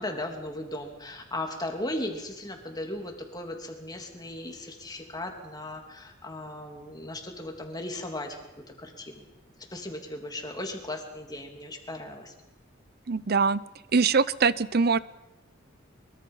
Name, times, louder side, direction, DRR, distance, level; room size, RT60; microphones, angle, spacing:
voice 1, 0.0-8.4 8.8-9.3 9.7-12.3, left 1 dB, 20° left, 3 dB, 2.9 m, -37 dB
voice 2, 13.1-13.6 13.9-15.0, right 5 dB, 50° right, 18 dB, 0.7 m, -23 dB
23.5 x 23.0 x 5.6 m, 0.96 s
head